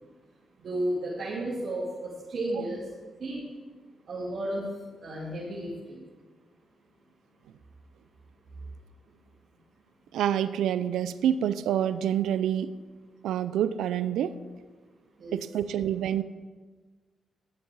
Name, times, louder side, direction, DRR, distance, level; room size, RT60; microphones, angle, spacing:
voice 1, 0.6-2.9 3.2-3.4 4.1-4.6 5.0-6.0 15.2-15.3, right 1 dB, 60° right, -9 dB, 2.9 m, -33 dB
voice 2, 10.1-12.7 13.2-14.3 15.3-16.2, right 10 dB, 85° right, 14 dB, 0.4 m, -27 dB
12.0 x 7.3 x 4.6 m, 1.4 s
cardioid pair, 65°, 0 cm